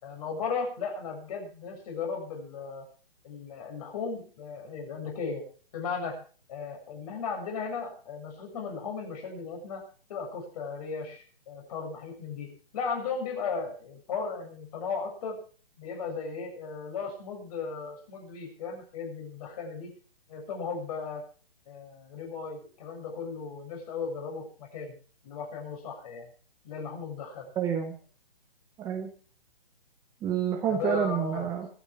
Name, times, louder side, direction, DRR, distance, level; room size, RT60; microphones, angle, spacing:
voice 1, 0.0-2.8 3.2-5.4 5.7-6.2 6.5-9.8 10.1-15.4 15.8-19.9 20.3-21.2 21.7-25.0 25.2-26.3 26.6-27.5 30.6-31.5, left 5 dB, 40° left, 2 dB, 7.4 m, -36 dB
voice 2, 27.6-28.0 28.8-29.1 30.2-31.7, right 8 dB, 10° right, 4 dB, 0.9 m, -28 dB
24.0 x 9.2 x 4.7 m, 0.41 s
hypercardioid pair, 155°, 30 cm